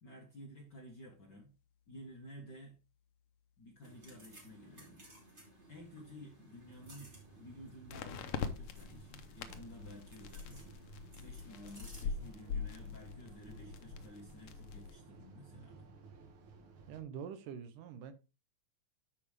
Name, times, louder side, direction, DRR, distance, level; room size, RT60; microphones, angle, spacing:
voice 1, 0.0-1.5 1.9-2.8 3.6-5.1 5.7-7.1 7.4-10.7 11.2-15.9, equal, 45° left, 1.4 m, -53 dB
sound 1, 1.1-1.2 7.9-14.9, left 6 dB, 85° left, 1.3 m, -43 dB
sound 2, 3.8-12.0, right 1 dB, 15° right, 2.7 m, -59 dB
sound 3, 6.7-17.0, right 4 dB, 55° right, 1.5 m, -57 dB
voice 2, 16.9-18.1, right 7 dB, 75° right, 2.4 m, -45 dB
12.0 x 5.1 x 3.3 m
omnidirectional pair, 3.9 m